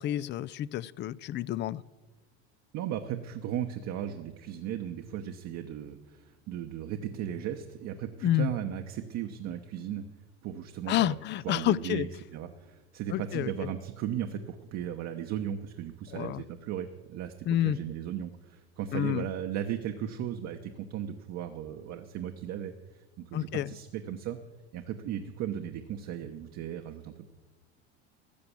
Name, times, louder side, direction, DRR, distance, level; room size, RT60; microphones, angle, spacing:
voice 1, 0.0-1.8 8.2-8.5 10.9-12.1 13.1-13.5 16.1-16.4 17.5-17.8 18.9-19.2 23.3-23.7, left 13 dB, 35° left, 20 dB, 0.4 m, -29 dB
voice 2, 2.7-10.0 10.4-11.2 11.4-17.3 17.6-24.4 24.7-27.3, right 10 dB, 50° right, 5 dB, 1.0 m, -36 dB
13.5 x 6.8 x 8.4 m, 1.2 s
hypercardioid pair, 85°, 33 cm